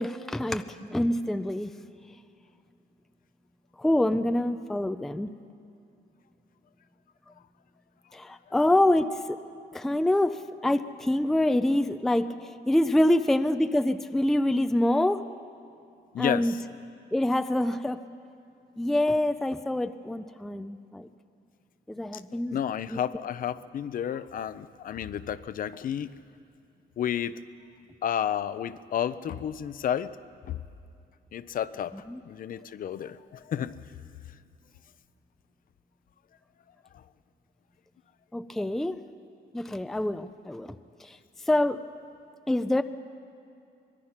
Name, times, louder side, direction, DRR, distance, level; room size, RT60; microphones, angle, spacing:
voice 1, 0.0-1.7 3.8-5.3 8.1-15.3 16.2-16.5 17.1-18.0 18.8-21.1 21.9-22.6 22.9-23.0 32.1-32.2 38.3-39.0 39.5-41.2 41.5-41.8 42.5-42.8, left 1 dB, ahead, 10 dB, 0.4 m, -26 dB
voice 2, 16.1-16.6 22.1-22.2 22.5-26.1 27.0-27.4 28.0-30.1 30.5-30.6 31.3-31.9 32.3-33.8 36.9-37.0, left 9 dB, 50° left, 14 dB, 0.6 m, -31 dB
23.5 x 21.5 x 5.9 m, 2.6 s
cardioid pair, 165°, 18 cm